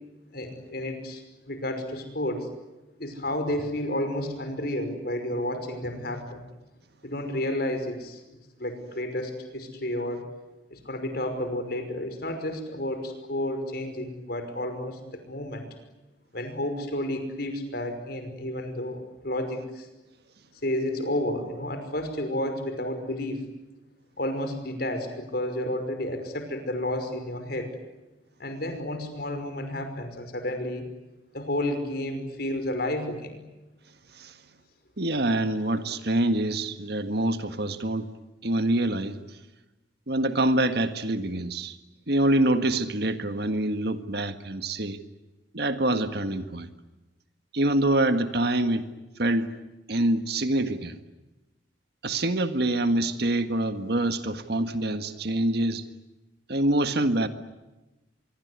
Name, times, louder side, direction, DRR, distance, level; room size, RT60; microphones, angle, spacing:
voice 1, 0.3-1.2 1.5-2.5 3.0-6.4 7.0-8.2 8.6-10.3 10.7-15.7 16.3-19.9 20.6-23.4 24.2-27.7 28.4-30.8 31.3-33.4 35.7-35.8, left 1 dB, 55° left, 7 dB, 5.5 m, -31 dB
voice 2, 35.0-38.0 38.4-39.2 40.1-41.7 42.1-45.0 45.5-46.7 47.5-48.8 49.2-49.5 49.9-50.9 52.0-55.8 56.5-57.3, right 1 dB, 55° right, 9 dB, 1.7 m, -25 dB
26.0 x 23.5 x 9.6 m, 1.0 s
head